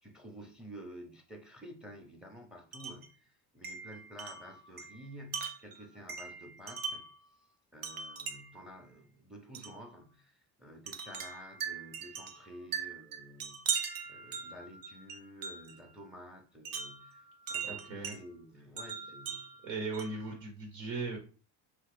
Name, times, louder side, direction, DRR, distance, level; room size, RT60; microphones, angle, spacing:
voice 1, 0.0-7.1 7.7-19.5, equal, ahead, 0.6 m, -51 dB
Wind chime, 2.7-3.1 3.6-7.2 7.8-8.7 9.5-9.8 10.9-15.8 16.7-18.2 18.8-20.3, right 6 dB, 45° right, 0.6 m, -40 dB
voice 2, 17.7-18.2 19.6-21.2, right 3 dB, 80° right, 1.0 m, -38 dB
3.1 x 2.4 x 3.3 m
supercardioid pair, 80°, 47 cm